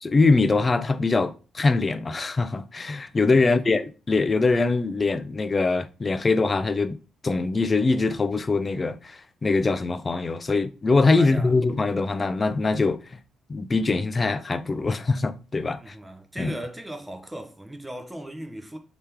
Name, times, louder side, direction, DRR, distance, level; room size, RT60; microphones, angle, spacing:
voice 1, 0.0-7.0 7.2-13.2 13.5-16.0 16.4-16.5, left 3 dB, 30° left, 0.4 m, -23 dB
voice 2, 3.4-3.8 11.2-11.5 15.8-18.8, right 1 dB, 10° right, 0.7 m, -38 dB
3.2 x 2.9 x 3.4 m
cardioid pair, 90°, 0 cm